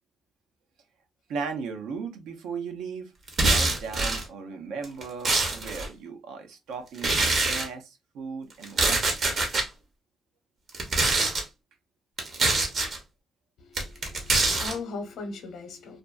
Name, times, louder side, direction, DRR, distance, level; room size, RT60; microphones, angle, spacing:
voice 1, 1.3-3.1 3.4-9.0, right 5 dB, 85° right, 0.6 m, -37 dB
sound 1, 3.3-4.2 4.8-5.9 7.0-7.7 8.6-9.7 10.7-11.4 12.2-13.0 13.7-14.7, right 3 dB, 55° right, 0.8 m, -24 dB
voice 2, 13.6-16.0, left 3 dB, 75° left, 0.8 m, -38 dB
2.5 x 2.3 x 2.3 m
cardioid pair, 90°, 0 cm